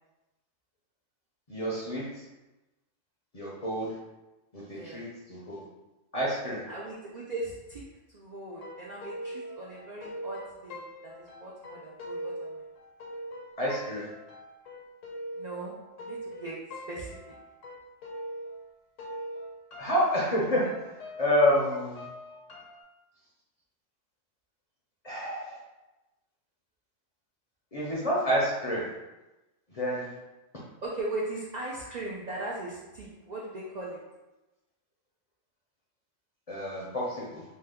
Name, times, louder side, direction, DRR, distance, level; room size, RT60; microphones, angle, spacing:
voice 1, 1.5-2.2 3.3-3.9 4.5-5.6 6.1-6.6 13.6-14.1 19.8-20.9 21.2-22.1 25.0-25.6 27.7-28.9 29.7-30.1 36.5-37.4, equal, 45° left, -6 dB, 0.5 m, -28 dB
voice 2, 4.7-5.0 6.7-7.8 8.1-12.6 15.3-16.6 16.9-17.3 30.8-34.0, right 2 dB, 85° right, -4 dB, 0.3 m, -39 dB
sound 1, 8.5-18.7 19.0-22.8, equal, 75° left, 1.0 m, -42 dB
2.7 x 2.1 x 3.4 m, 1.0 s
omnidirectional pair, 1.3 m